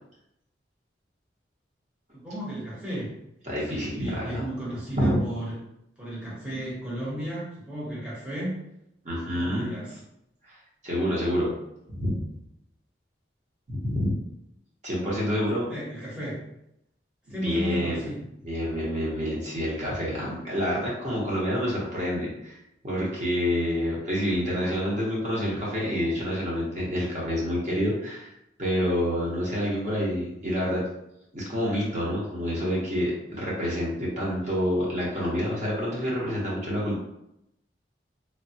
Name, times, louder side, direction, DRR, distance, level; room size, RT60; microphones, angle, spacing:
voice 1, 2.1-3.1 3.7-5.5 6.0-8.6 9.3-10.0 15.7-16.4 17.3-18.2, right 1 dB, 5° right, -9 dB, 0.8 m, -34 dB
voice 2, 3.4-4.4 4.9-5.2 9.0-9.7 10.5-10.6 10.8-11.5 11.9-12.2 13.7-14.1 14.8-15.7 17.4-18.0 18.4-28.3 28.6-30.8 31.3-37.0, equal, 40° right, -6 dB, 0.8 m, -28 dB
3.2 x 2.1 x 2.6 m, 0.83 s
head